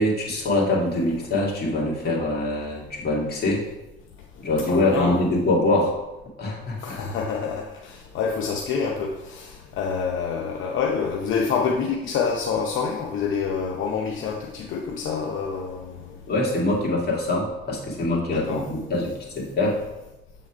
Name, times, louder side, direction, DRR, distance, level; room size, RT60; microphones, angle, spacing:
voice 1, 0.0-3.6 4.4-6.0 6.4-7.0 16.3-19.8, left 2 dB, 50° left, -3 dB, 2.2 m, -24 dB
voice 2, 4.7-5.2 6.8-16.0 18.3-18.7, left 5 dB, 80° left, 1 dB, 0.7 m, -27 dB
7.3 x 4.1 x 4.9 m, 0.99 s
cardioid pair, 90°, 20 cm